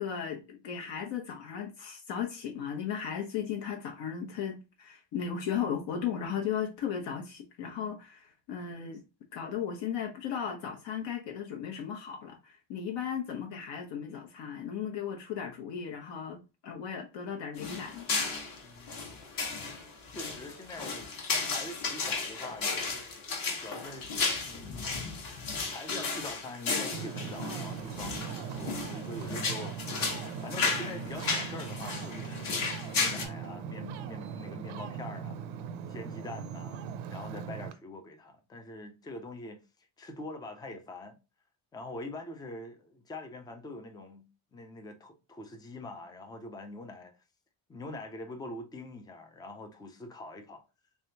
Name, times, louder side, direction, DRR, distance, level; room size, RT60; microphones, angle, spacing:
voice 1, 0.0-9.0 9.3-18.1, left 8 dB, 65° left, 0.9 m, -36 dB
sound 1, 17.6-33.2, left 4 dB, 45° left, 1.1 m, -34 dB
voice 2, 18.6-19.2 20.1-23.1 23.6-24.1 24.4-25.2 25.5-29.8 30.4-32.7 32.9-35.4 35.9-36.8 37.1-39.6 40.0-41.2 41.7-47.1 47.7-50.6, left 2 dB, 10° left, 0.3 m, -44 dB
Ocean, 26.9-37.7, right 6 dB, 75° right, 0.6 m, -39 dB
3.4 x 3.4 x 2.7 m
cardioid pair, 145°, 48 cm